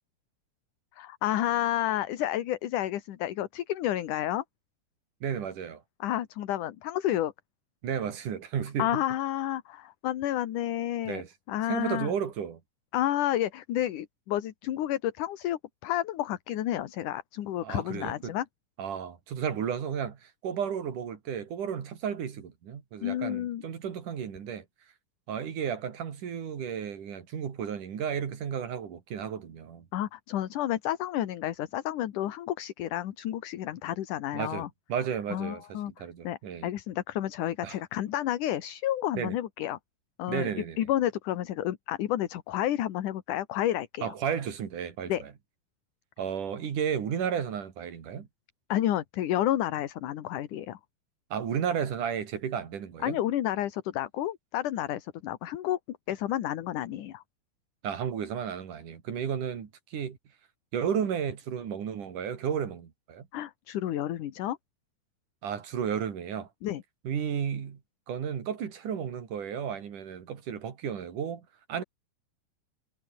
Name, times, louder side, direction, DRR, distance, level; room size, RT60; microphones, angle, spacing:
voice 1, 1.0-4.4 6.0-7.3 8.8-11.2 11.5-12.1 12.9-18.5 23.0-23.6 29.9-34.7 35.3-35.9 36.2-39.8 40.2-40.5 40.8-44.1 45.1-45.2 48.7-50.8 53.0-57.2 63.3-64.6 66.6-66.8, left 12 dB, 75° left, 2.9 m, -30 dB
voice 2, 5.2-5.8 7.8-9.0 11.0-11.3 11.7-12.6 17.6-18.3 18.8-24.7 25.3-29.9 34.3-36.7 37.6-37.8 39.2-39.4 40.3-40.8 44.0-45.3 46.2-48.3 51.3-53.2 57.8-60.2 60.7-63.3 65.4-66.5 67.0-67.8 68.1-71.8, right 8 dB, 75° right, 4.3 m, -33 dB
omnidirectional pair, 3.6 m